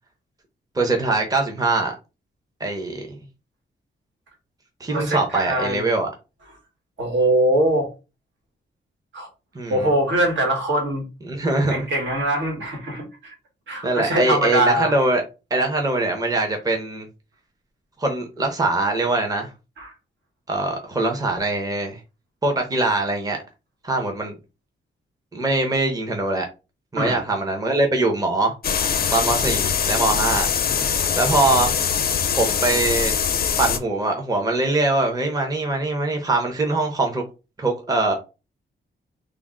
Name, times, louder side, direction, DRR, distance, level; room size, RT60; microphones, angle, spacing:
voice 1, 0.7-1.9 2.6-3.2 4.8-6.1 9.5-9.9 11.3-11.9 13.8-15.2 15.5-17.1 18.0-19.5 20.5-22.0 22.4-23.4 23.8-24.4 25.3-26.5 26.9-28.5 29.1-30.5 31.1-31.7 32.3-33.2 33.6-37.2 37.6-38.1, right 2 dB, 20° right, 0.7 m, -22 dB
voice 2, 4.9-5.8 7.0-7.9 9.1-9.3 9.7-11.0 11.7-13.3 13.7-14.9 19.8-19.9 26.9-27.2, right 1 dB, 70° right, 1.4 m, -22 dB
sound 1, 28.6-33.8, left 7 dB, 50° left, 0.5 m, -22 dB
3.4 x 2.0 x 3.7 m
wide cardioid pair, 120°, 20 cm